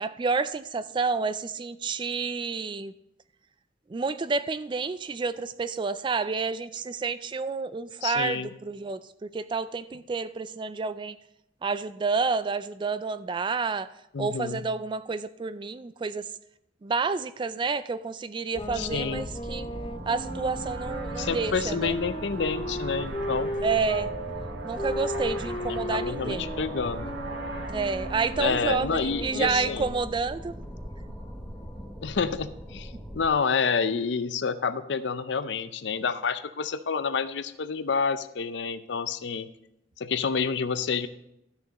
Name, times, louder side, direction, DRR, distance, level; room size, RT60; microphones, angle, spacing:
voice 1, 0.0-2.9 3.9-11.2 11.6-13.9 14.2-16.3 16.8-19.7 20.1-21.9 23.6-24.1 24.6-26.5 27.7-30.6, right 4 dB, 25° right, 14 dB, 0.3 m, -29 dB
voice 2, 8.0-8.5 14.1-14.6 18.7-19.3 21.2-23.5 25.7-27.2 28.4-29.9 32.0-39.5 40.0-41.1, left 5 dB, 70° left, 13 dB, 0.5 m, -29 dB
sound 1, 18.5-24.1 24.7-30.2, left 1 dB, 30° left, 0.7 m, -36 dB
sound 2, 18.5-33.3, equal, ahead, 1.0 m, -40 dB
sound 3, 19.5-29.8, right 3 dB, 65° right, 1.0 m, -41 dB
13.0 x 6.4 x 4.1 m, 0.83 s
head